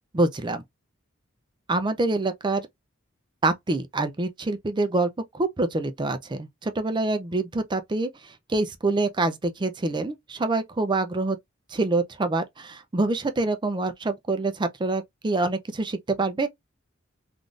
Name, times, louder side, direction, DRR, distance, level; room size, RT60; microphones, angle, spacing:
voice 1, 0.1-0.6 1.7-2.7 3.4-11.4 11.7-16.5, right 2 dB, 25° right, 0.4 m, -26 dB
3.5 x 2.5 x 2.4 m
head